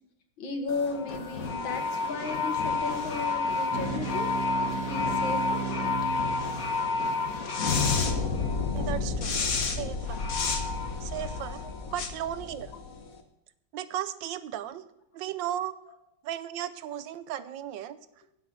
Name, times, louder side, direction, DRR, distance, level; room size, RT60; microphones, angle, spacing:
voice 1, 0.4-5.7 11.6-12.0 15.9-16.0, left 4 dB, 85° left, 5 dB, 2.3 m, -35 dB
sound 1, 0.7-13.1, left 4 dB, 50° left, 1.6 m, -30 dB
sound 2, 3.7-8.6, right 5 dB, 50° right, 1.5 m, -36 dB
voice 2, 8.7-9.3 9.6-10.2 11.0-12.8 13.7-14.8 15.1-15.7 16.2-18.0, right 11 dB, 75° right, 14 dB, 1.4 m, -35 dB
10.0 x 8.3 x 6.1 m, 0.83 s
omnidirectional pair, 2.1 m